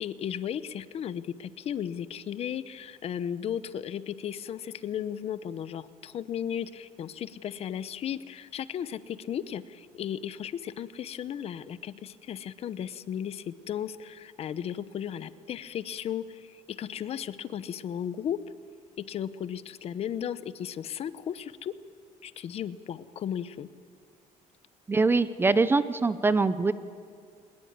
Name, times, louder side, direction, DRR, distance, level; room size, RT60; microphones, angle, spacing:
voice 1, 0.0-18.4 19.0-21.7 22.2-23.7, left 9 dB, 45° left, 15 dB, 0.8 m, -35 dB
voice 2, 24.9-26.7, right 3 dB, 15° right, 14 dB, 0.6 m, -23 dB
22.5 x 20.5 x 9.5 m, 2.4 s
cardioid pair, 165°, 15 cm